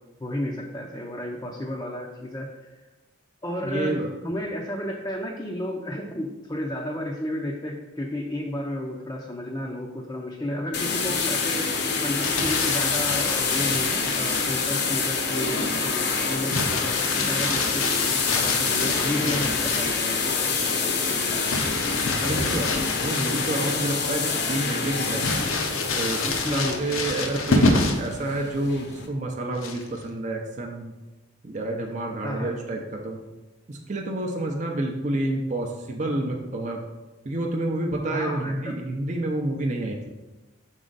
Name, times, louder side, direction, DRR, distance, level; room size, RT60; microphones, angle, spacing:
voice 1, 0.2-2.7 3.4-21.5 26.4-26.9 32.2-32.5 38.1-38.7, left 1 dB, 15° left, -2 dB, 0.5 m, -32 dB
voice 2, 3.6-4.1 19.1-19.5 22.2-25.3 25.9-30.9 31.4-33.2 33.7-36.8 37.2-40.1, right 1 dB, 35° right, 0 dB, 0.5 m, -29 dB
sound 1, 10.7-29.1, left 4 dB, 50° left, 0.7 m, -26 dB
Crumpling crinkling, 12.2-14.6 16.5-20.0 21.5-23.8 24.3-24.4 25.2-28.1 29.6-30.0, left 3 dB, 85° left, 0.8 m, -28 dB
6.2 x 4.3 x 3.9 m, 1.1 s
head